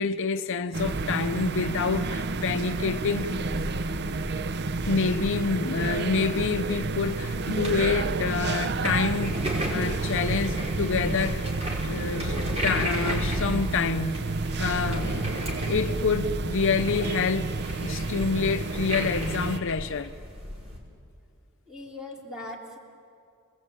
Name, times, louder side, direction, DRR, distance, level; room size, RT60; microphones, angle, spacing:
voice 1, 0.0-3.3 4.9-11.5 11.8-14.2 14.6-15.1 15.7-17.5 17.8-20.1, left 5 dB, 60° left, 0.7 m, -27 dB
sound 1, 0.7-19.6, right 3 dB, 50° right, 0.7 m, -30 dB
sound 2, 3.2-20.8, equal, 30° right, 5.2 m, -36 dB
voice 2, 21.7-22.8, left 2 dB, 5° right, 3.7 m, -40 dB
29.5 x 21.0 x 8.9 m
head